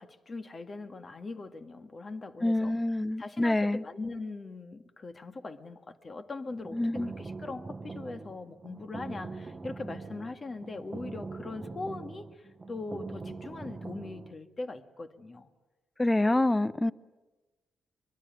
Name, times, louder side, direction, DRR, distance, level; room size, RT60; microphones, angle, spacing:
voice 1, 0.0-2.7 3.2-15.5, left 3 dB, 35° left, 8 dB, 1.8 m, -41 dB
voice 2, 2.4-3.8 6.7-7.1 16.0-16.9, left 1 dB, 15° left, 18 dB, 0.8 m, -26 dB
sound 1, 6.5-14.3, right 3 dB, 25° right, 1.1 m, -42 dB
24.0 x 23.0 x 9.3 m, 1.2 s
cardioid pair, 95°, 0 cm